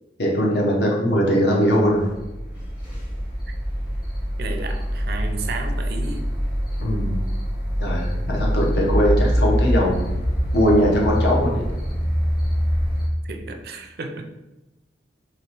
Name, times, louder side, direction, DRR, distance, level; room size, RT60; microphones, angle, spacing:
voice 1, 0.2-2.1 6.8-7.2 7.8-10.0 10.5-11.6, equal, 60° left, -2 dB, 0.8 m, -20 dB
sound 1, 1.8-13.1, equal, 25° left, 1.0 m, -24 dB
voice 2, 4.4-6.3 13.2-14.3, right 3 dB, 55° right, 5 dB, 0.4 m, -33 dB
3.0 x 3.0 x 4.4 m, 1.0 s
head